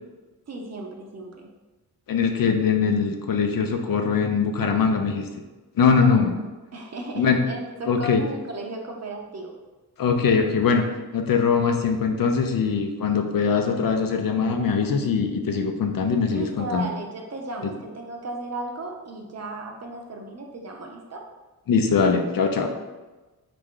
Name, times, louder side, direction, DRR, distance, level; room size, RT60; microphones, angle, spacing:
voice 1, 0.5-1.5 5.9-6.2 6.7-9.5 16.3-21.2, right 2 dB, 45° right, 1 dB, 0.6 m, -35 dB
voice 2, 2.1-5.3 5.8-6.3 7.2-7.4 7.9-8.2 10.0-10.8 11.1-16.9 21.7-22.7, left 5 dB, 60° left, 4 dB, 0.5 m, -22 dB
3.2 x 2.5 x 3.6 m, 1.2 s
cardioid pair, 70°, 38 cm